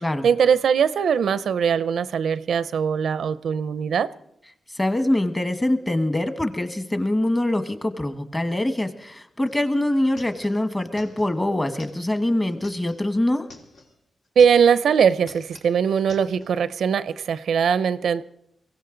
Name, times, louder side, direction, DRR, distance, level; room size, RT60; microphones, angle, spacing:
voice 1, 0.2-4.1 14.4-18.2, right 7 dB, 85° right, 0.5 m, -20 dB
voice 2, 4.7-13.5, left 1 dB, 20° left, 1.3 m, -24 dB
sound 1, 9.5-9.6 9.8-13.9 14.3-14.9 15.1-16.5, left 2 dB, 85° left, 2.9 m, -49 dB
23.0 x 16.5 x 3.9 m
wide cardioid pair, 105°, 0 cm